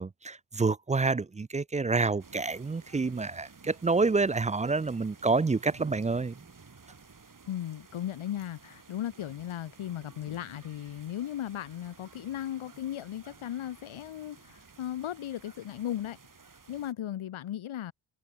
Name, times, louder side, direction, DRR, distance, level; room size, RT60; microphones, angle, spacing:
voice 1, 0.0-6.3, right 3 dB, 15° right, 0.4 m, -28 dB
sound 1, 2.2-16.9, right 4 dB, 40° right, 5.3 m, -54 dB
voice 2, 7.5-16.2 16.7-17.9, left 11 dB, 75° left, 1.6 m, -36 dB
cardioid pair, 60°, 49 cm